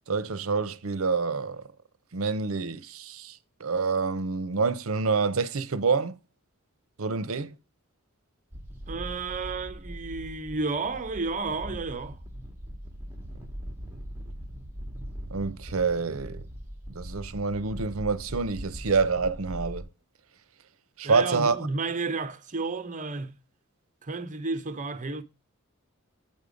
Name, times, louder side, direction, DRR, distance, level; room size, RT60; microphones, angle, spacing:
voice 1, 0.1-1.6 2.1-6.2 7.0-7.5 15.3-16.4 16.9-19.9 21.0-21.6, right 4 dB, 70° right, 0.8 m, -27 dB
sound 1, 8.5-19.8, equal, 10° right, 1.8 m, -41 dB
voice 2, 8.9-12.2 21.0-23.4 24.0-25.2, right 3 dB, 35° right, 0.8 m, -32 dB
9.0 x 5.4 x 5.1 m
head